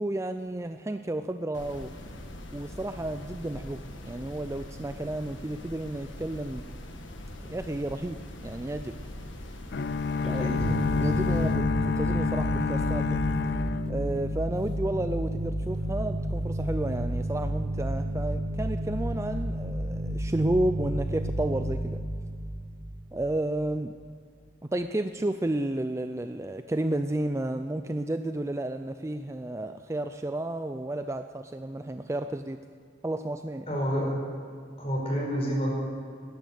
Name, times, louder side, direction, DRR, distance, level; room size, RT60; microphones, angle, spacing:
voice 1, 0.0-1.9 2.5-6.7 7.5-9.0 10.3-13.2 13.9-22.0 23.1-23.9 24.6-32.6 33.0-33.8, right 1 dB, 15° right, 8 dB, 0.4 m, -32 dB
sound 1, 1.5-11.5, left 1 dB, 80° left, 1.5 m, -42 dB
sound 2, 9.7-14.7, left 4 dB, 55° left, 0.4 m, -28 dB
sound 3, 10.6-23.7, right 1 dB, 80° right, 1.4 m, -31 dB
voice 2, 33.7-34.1 34.8-35.7, equal, 30° left, -2 dB, 5.1 m, -28 dB
19.5 x 10.5 x 6.7 m, 2.3 s
head